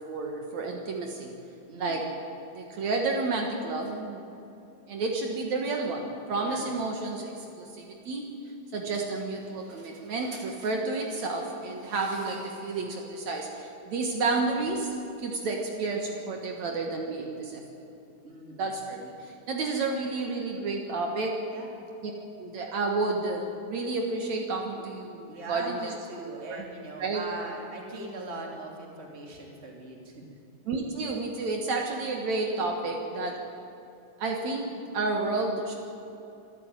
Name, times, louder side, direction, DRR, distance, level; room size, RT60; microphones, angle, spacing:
voice 1, 0.0-1.3 1.8-2.1 2.6-4.2 4.9-7.7 8.1-8.3 8.7-14.9 15.2-17.6 18.6-21.4 22.4-26.7 27.0-27.3 30.7-33.4 34.2-35.7, right 3 dB, 65° right, 2 dB, 2.7 m, -31 dB
voice 2, 1.7-2.1 6.4-6.7 18.2-18.6 21.5-21.8 25.3-30.2, right 2 dB, 20° right, 1 dB, 2.7 m, -40 dB
24.5 x 12.5 x 9.0 m, 2.8 s
omnidirectional pair, 3.7 m